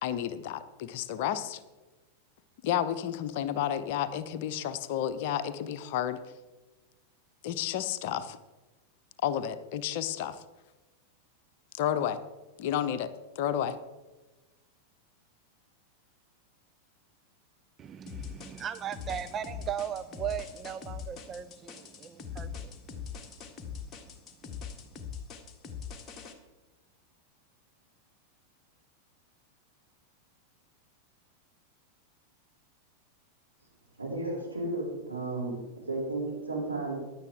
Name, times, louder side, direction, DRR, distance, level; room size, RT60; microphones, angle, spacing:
voice 1, 0.0-1.6 2.6-6.2 7.4-8.4 9.2-10.4 11.7-12.2 12.6-13.1 13.4-13.8, left 10 dB, 50° left, 0.8 m, -31 dB
voice 2, 17.8-22.8 23.2-23.4, right 9 dB, 25° right, 0.4 m, -38 dB
sound 1, 18.1-26.3, left 7 dB, 25° left, 1.6 m, -42 dB
voice 3, 34.0-36.9, right 2 dB, 85° right, 5.3 m, -33 dB
16.5 x 10.5 x 3.6 m
figure-of-eight pair, 90°, 0 cm